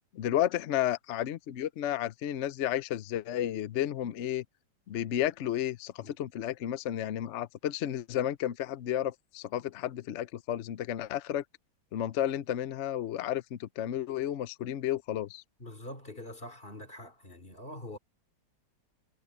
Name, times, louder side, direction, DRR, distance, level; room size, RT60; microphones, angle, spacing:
voice 1, 0.1-4.4 4.9-11.4 11.9-15.4, left 11 dB, 75° left, 0.6 m, -32 dB
voice 2, 15.6-18.0, left 1 dB, 25° left, 3.4 m, -44 dB
omnidirectional pair, 2.1 m